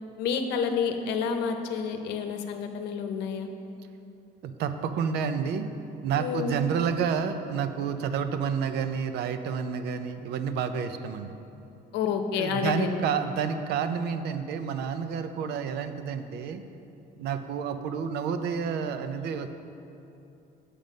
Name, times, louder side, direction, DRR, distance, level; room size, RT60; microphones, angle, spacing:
voice 1, 0.2-3.5 6.2-6.6 11.9-13.1, left 6 dB, 85° left, 6 dB, 0.8 m, -29 dB
voice 2, 4.4-5.7 6.0-11.3 12.4-16.6 17.2-19.5, right 7 dB, 75° right, 9 dB, 0.6 m, -29 dB
7.5 x 6.7 x 5.2 m, 2.8 s
cardioid pair, 110°, 17 cm